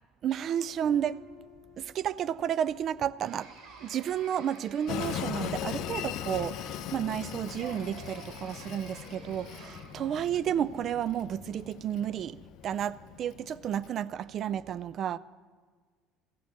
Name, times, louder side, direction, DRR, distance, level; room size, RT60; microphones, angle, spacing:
voice 1, 0.2-1.2 1.8-3.5 3.8-15.2, right 9 dB, 45° right, 0.4 m, -32 dB
sound 1, 0.8-10.7 11.0-11.7, right 1 dB, 90° right, 5.2 m, -54 dB
sound 2, 3.2-5.8 7.5-10.1, right 4 dB, 65° right, 2.9 m, -51 dB
Train, 4.9-13.9, left 10 dB, 60° left, 0.7 m, -39 dB
14.5 x 7.0 x 8.8 m
cardioid pair, 125°, 0 cm